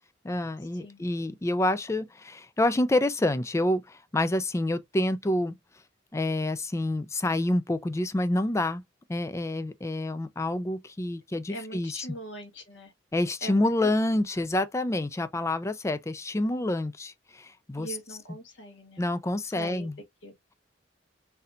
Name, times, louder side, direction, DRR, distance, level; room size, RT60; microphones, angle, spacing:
voice 1, 0.2-5.5 6.1-8.8 9.1-12.1 13.1-18.0 19.0-20.0, left 1 dB, 15° left, 0.4 m, -28 dB
voice 2, 11.5-12.9 13.4-13.9 17.8-19.0 19.6-19.9 20.2-20.3, equal, 90° left, 1.4 m, -41 dB
4.1 x 2.8 x 2.5 m
head